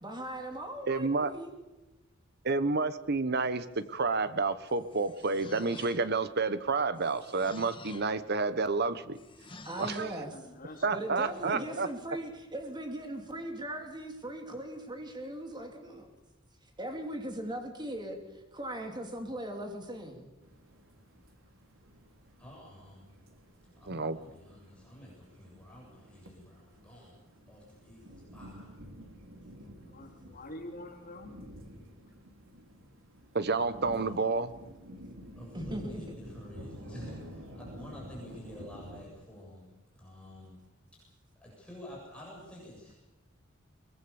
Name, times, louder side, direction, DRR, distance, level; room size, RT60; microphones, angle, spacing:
voice 1, 0.0-1.5 9.6-10.3 10.9-16.1 16.8-20.3 35.5-36.2, right 1 dB, 20° right, 3 dB, 3.1 m, -39 dB
voice 2, 0.9-1.3 2.4-9.2 9.8-10.1 10.8-11.9 23.9-24.2 33.3-34.5, right 3 dB, 55° right, 13 dB, 1.1 m, -30 dB
sound 1, 4.7-6.3 6.9-8.2 9.1-10.2, left 3 dB, 25° left, 1.5 m, -50 dB
voice 3, 10.3-11.6 29.8-31.3, left 1 dB, 45° left, 2 dB, 3.8 m, -47 dB
voice 4, 11.3-11.8 22.4-23.2 23.8-27.2 27.5-28.7 33.5-34.2 35.4-40.6 41.4-42.9, equal, 5° left, -4 dB, 7.5 m, -49 dB
sound 2, 20.4-39.0, equal, 80° right, 4.0 m, -50 dB
22.5 x 21.0 x 7.1 m, 1.1 s
head